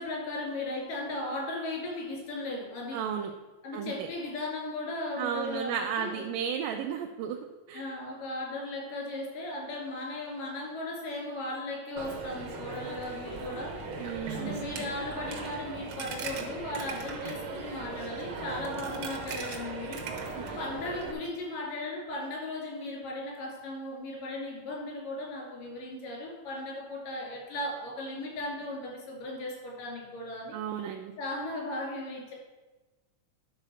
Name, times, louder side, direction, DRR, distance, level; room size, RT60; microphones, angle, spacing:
voice 1, 0.0-3.0 3.6-6.2 7.7-13.7 14.3-20.0 20.3-30.6 31.2-32.3, left 2 dB, 85° left, -2 dB, 4.4 m, -37 dB
voice 2, 2.9-3.3 3.7-4.1 5.2-7.4 7.7-8.0 14.0-14.7 20.3-20.5 30.5-31.1, right 8 dB, 90° right, 3 dB, 2.3 m, -34 dB
Coin (dropping), 12.0-21.1, right 4 dB, 75° right, 1.0 m, -38 dB
11.5 x 4.1 x 6.9 m, 1.2 s
omnidirectional pair, 3.7 m